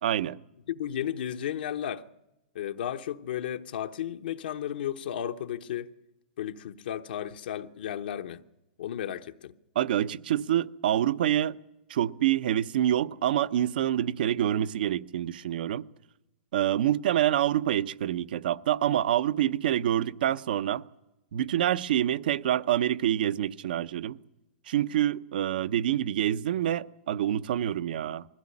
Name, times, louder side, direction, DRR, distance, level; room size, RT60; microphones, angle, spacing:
voice 1, 0.0-0.4 9.7-11.6 11.9-15.9 16.5-20.8 21.3-24.2 24.7-28.3, right 11 dB, 70° right, 0.8 m, -26 dB
voice 2, 0.7-2.1 2.5-5.9 6.4-8.4 8.8-9.5, left 10 dB, 75° left, 1.1 m, -34 dB
21.0 x 16.0 x 9.9 m
supercardioid pair, 155°, 5 cm